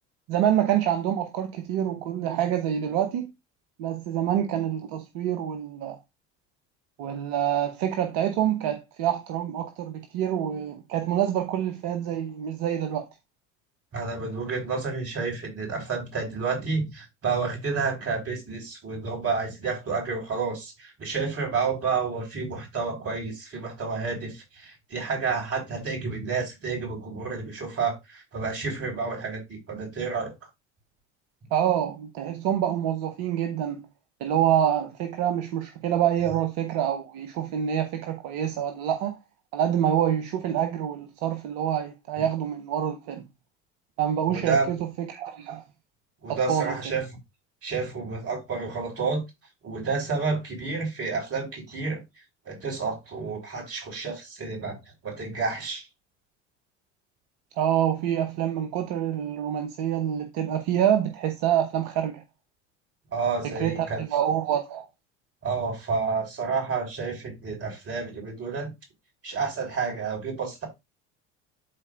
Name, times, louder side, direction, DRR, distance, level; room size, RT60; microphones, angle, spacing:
voice 1, 0.3-3.3 3.8-6.0 7.0-13.1 31.5-33.9 34.2-39.2 39.5-43.2 44.0-45.6 46.3-46.8 57.6-62.2 63.4-64.9, right 10 dB, 70° right, 1.0 m, -26 dB
voice 2, 13.9-30.3 44.3-44.7 46.2-47.0 47.6-49.2 49.6-52.0 52.5-54.8 55.0-55.8 63.1-64.0 65.4-68.7 69.2-70.7, right 4 dB, 40° right, 4.4 m, -30 dB
12.0 x 4.2 x 2.4 m
hypercardioid pair, 70°, 35 cm